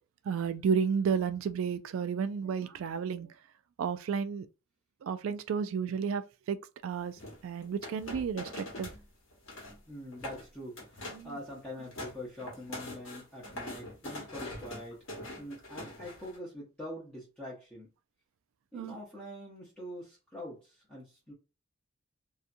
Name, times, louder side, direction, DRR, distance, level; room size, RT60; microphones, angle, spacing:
voice 1, 0.3-3.3 3.8-4.5 5.0-6.2 6.5-6.6 6.8-7.2 7.4-8.9 11.1-11.3 18.7-19.0, right 6 dB, 75° right, 0.3 m, -32 dB
sound 1, 7.2-9.0 9.3-9.8 10.1-10.4 10.8-11.3 11.7-16.4, left 1 dB, 70° left, 1.1 m, -43 dB
voice 2, 9.9-15.0 15.4-17.9 18.7-21.3, left 1 dB, 5° left, 0.7 m, -44 dB
2.7 x 2.3 x 2.5 m
head